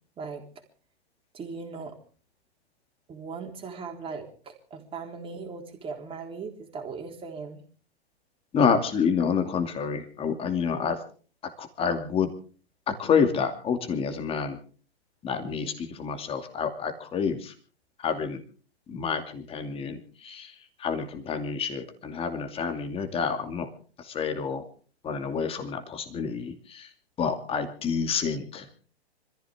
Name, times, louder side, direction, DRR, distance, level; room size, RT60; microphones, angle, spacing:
voice 1, 1.3-2.0 3.1-7.6, right 5 dB, 15° right, 2 dB, 3.8 m, -38 dB
voice 2, 8.5-11.0 11.6-12.3 13.0-14.6 15.2-17.5 18.0-18.4 18.9-20.0 20.2-20.5 20.8-23.6 24.1-24.6 25.0-26.9 27.2-28.6, left 6 dB, 15° left, 6 dB, 2.5 m, -28 dB
26.0 x 15.0 x 3.7 m, 0.41 s
hypercardioid pair, 130°, 33 cm